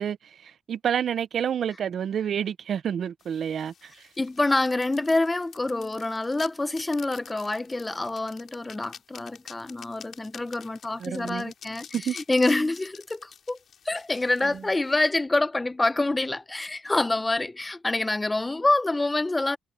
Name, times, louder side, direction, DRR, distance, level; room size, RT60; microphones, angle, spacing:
voice 1, 0.0-4.1 11.0-11.5 11.9-12.2, right 8 dB, 60° right, 0.7 m, -29 dB
sound 1, 3.2-15.1, left 8 dB, 60° left, 5.1 m, -48 dB
voice 2, 4.2-13.6 13.8-19.6, left 2 dB, 15° left, 1.0 m, -26 dB
cardioid pair, 90°, 0 cm